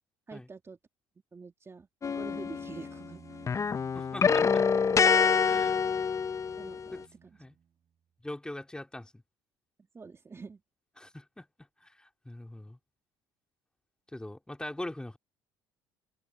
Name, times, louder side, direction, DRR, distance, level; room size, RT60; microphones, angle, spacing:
voice 1, 0.3-0.8 1.3-1.9 2.1-3.5 5.5-5.7 6.6-7.3 9.9-10.6, right 4 dB, 25° right, 2.2 m, -46 dB
sound 1, 2.0-3.1 3.4-6.9, left 6 dB, 30° left, 0.8 m, -26 dB
Bowed string instrument, 2.1-7.9, right 8 dB, 45° right, 5.9 m, -56 dB
voice 2, 3.9-4.7 5.4-6.1 6.9-7.0 7.4-7.5 8.2-9.2 11.0-11.4 11.8-12.8 14.1-15.2, left 1 dB, 10° left, 3.3 m, -42 dB
open air
supercardioid pair, 80°, 10 cm